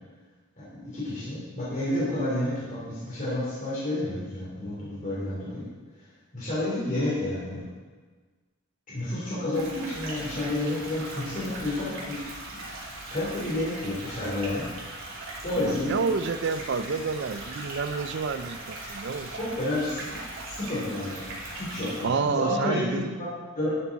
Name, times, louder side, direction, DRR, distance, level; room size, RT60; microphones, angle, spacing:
voice 1, 0.6-5.6 6.3-7.6 8.9-12.2 12.5-12.6 13.1-14.7 15.4-16.0 19.4-20.2 20.4-23.7, left 1 dB, 40° left, -8 dB, 3.0 m, -30 dB
sound 1, 9.5-22.0, right 2 dB, 80° right, 2.7 m, -39 dB
voice 2, 15.6-19.3 22.0-23.1, right 5 dB, 60° right, 12 dB, 0.4 m, -29 dB
11.5 x 6.9 x 4.1 m, 1.4 s
head